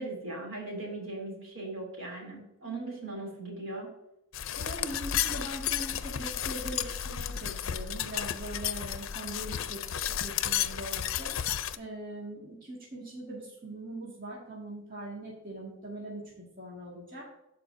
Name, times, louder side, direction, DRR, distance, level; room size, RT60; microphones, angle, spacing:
voice 1, 0.0-3.9, right 2 dB, 80° right, -1 dB, 2.9 m, -39 dB
sound 1, 4.3-11.8, left 10 dB, 75° left, 0.5 m, -33 dB
voice 2, 4.5-11.3 11.8-17.2, right 1 dB, 45° right, -4 dB, 1.9 m, -41 dB
13.0 x 4.7 x 2.6 m, 0.93 s
head